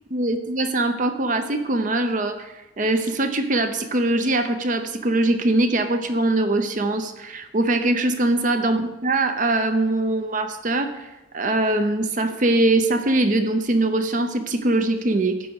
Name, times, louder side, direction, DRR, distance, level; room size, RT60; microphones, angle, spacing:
voice 1, 0.1-15.4, right 2 dB, 45° right, 8 dB, 0.7 m, -22 dB
12.5 x 7.7 x 4.8 m, 1.0 s
head